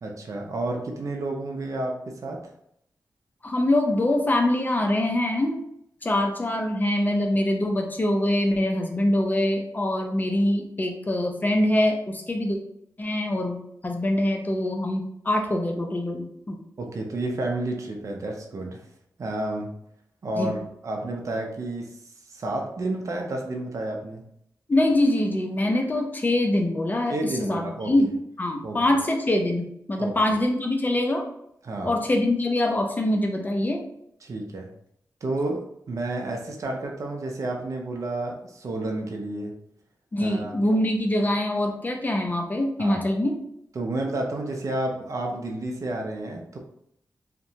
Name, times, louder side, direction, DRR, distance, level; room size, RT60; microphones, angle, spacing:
voice 1, 0.0-2.5 16.8-18.8 19.2-19.7 20.2-22.0 22.3-24.2 27.1-27.9 28.6-28.8 30.0-30.1 31.6-32.0 34.2-34.7 35.2-39.5 40.2-40.6 42.8-43.1 43.8-46.6, right 2 dB, 55° right, 1 dB, 0.5 m, -30 dB
voice 2, 3.4-5.6 6.0-12.6 13.0-16.6 20.4-20.5 24.7-27.1 27.4-31.2 31.8-33.8 40.1-43.4, left 1 dB, 25° left, 3 dB, 0.5 m, -24 dB
2.8 x 2.1 x 2.7 m, 0.73 s
wide cardioid pair, 85°, 7 cm